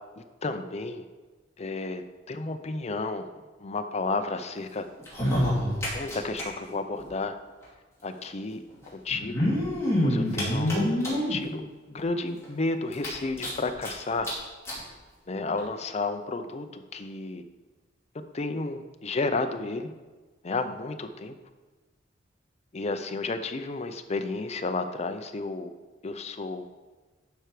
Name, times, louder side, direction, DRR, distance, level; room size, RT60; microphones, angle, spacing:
voice 1, 0.2-1.0 1.6-3.3 3.6-4.9 5.9-7.4 8.0-9.5 10.0-11.0 11.3-14.3 15.3-17.4 18.3-19.9 20.4-21.4 22.7-25.7 26.0-26.7, left 3 dB, 35° left, 8 dB, 0.6 m, -32 dB
sound 1, 5.0-6.4 6.7-6.8 7.0-7.1 8.1-8.2 9.1-11.4 12.0-12.1 12.4-12.5 12.9-13.9 14.2-14.3 14.6-14.8 15.6-15.7, left 1 dB, 15° left, 2.7 m, -26 dB
11.5 x 4.5 x 4.9 m, 1.3 s
head